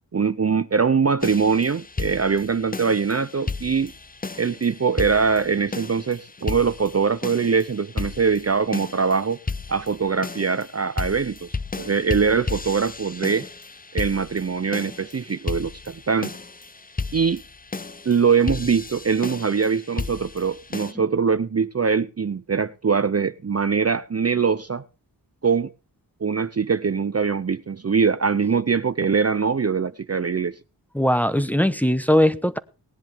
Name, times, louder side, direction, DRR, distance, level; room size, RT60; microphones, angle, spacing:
voice 1, 0.1-3.9 4.4-9.4 9.7-11.5 11.8-13.5 13.9-16.3 17.1-17.4 18.0-24.8 25.4-25.7 26.2-30.6, right 5 dB, 35° right, 0.6 m, -22 dB
sound 1, 1.2-20.9, left 4 dB, 20° left, 0.6 m, -34 dB
voice 2, 30.9-32.6, equal, 5° left, 1.0 m, -20 dB
18.5 x 10.5 x 3.5 m
wide cardioid pair, 70°, 41 cm